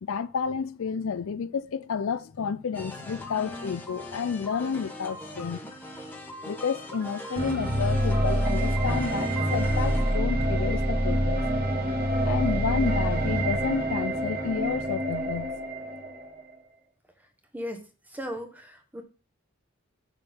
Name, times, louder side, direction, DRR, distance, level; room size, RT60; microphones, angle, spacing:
voice 1, 0.0-5.6 6.0-6.2 6.5-11.4 12.2-15.5, left 6 dB, 75° left, 0.4 m, -31 dB
sound 1, 2.7-10.1, left 2 dB, 10° left, 1.2 m, -40 dB
sound 2, 7.4-16.4, right 1 dB, 45° right, 1.5 m, -26 dB
voice 2, 18.1-19.0, equal, 10° right, 1.1 m, -36 dB
7.3 x 6.8 x 3.6 m
head